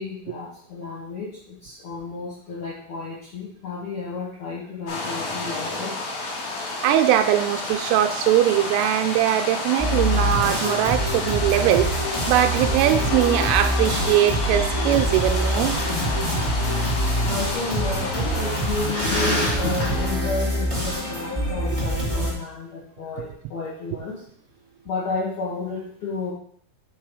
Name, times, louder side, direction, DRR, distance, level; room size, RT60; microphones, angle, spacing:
voice 1, 0.0-5.9 14.0-14.1 16.0-16.3 17.2-24.2 24.9-26.3, left 3 dB, 60° left, -8 dB, 2.0 m, -31 dB
sound 1, 4.9-20.1, left 2 dB, 80° left, 4.6 m, -31 dB
voice 2, 6.6-15.8, right 12 dB, 85° right, 6 dB, 3.0 m, -21 dB
sound 2, 9.8-22.3, equal, 40° left, 0.4 m, -25 dB
9.3 x 3.7 x 4.8 m, 0.63 s
omnidirectional pair, 5.9 m